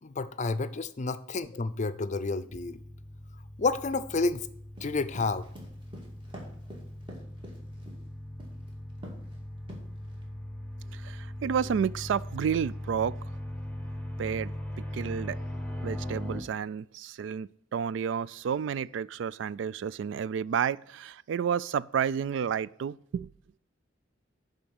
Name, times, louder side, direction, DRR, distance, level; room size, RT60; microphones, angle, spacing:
voice 1, 0.0-2.8 3.6-4.5 4.8-5.5, left 3 dB, 40° left, 0.5 m, -30 dB
sound 1, 2.5-16.4, left 1 dB, 10° left, 1.0 m, -40 dB
sound 2, 4.8-8.0 8.4-8.7 9.0-9.3 9.7-10.2, equal, 25° right, 2.3 m, -46 dB
voice 2, 10.9-13.2 14.2-14.5 14.9-15.4 15.8-23.3, right 7 dB, 80° right, 0.3 m, -31 dB
10.5 x 3.9 x 7.1 m
head